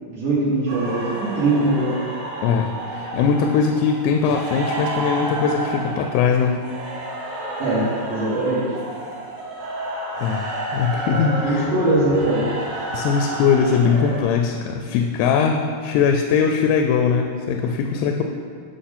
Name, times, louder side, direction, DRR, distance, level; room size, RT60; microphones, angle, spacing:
voice 1, 0.1-1.9 7.6-8.7 11.4-12.5 18.1-18.2, right 2 dB, 60° right, -11 dB, 3.4 m, -21 dB
sound 1, 0.7-14.2, right 1 dB, 85° right, 3.7 m, -30 dB
voice 2, 2.4-6.6 10.2-11.7 12.9-18.2, left 6 dB, 90° left, 4 dB, 2.6 m, -20 dB
11.5 x 5.6 x 4.2 m, 2.1 s
omnidirectional pair, 4.6 m